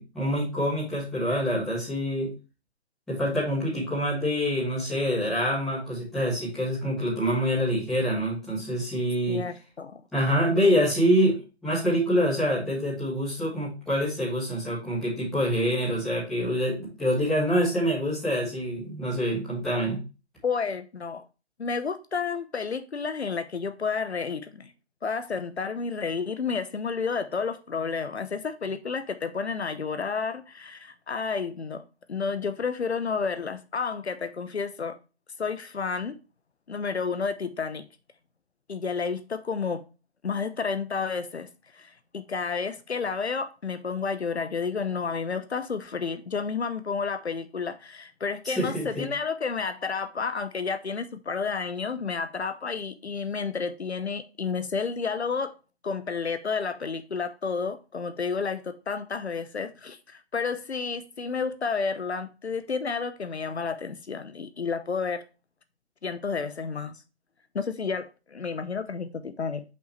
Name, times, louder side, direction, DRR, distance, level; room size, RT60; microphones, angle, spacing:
voice 1, 0.0-2.3 3.1-9.4 10.1-20.0 48.4-49.1, equal, ahead, 1.7 m, -26 dB
voice 2, 9.3-10.0 20.4-21.2 21.6-24.7 25.0-35.0 35.4-36.2 36.7-37.9 38.7-39.8 40.2-41.5 41.7-55.6 55.8-65.2 66.0-67.0 67.5-69.6, left 5 dB, 70° left, 0.9 m, -31 dB
6.6 x 5.6 x 3.1 m
figure-of-eight pair, 170°, 34 cm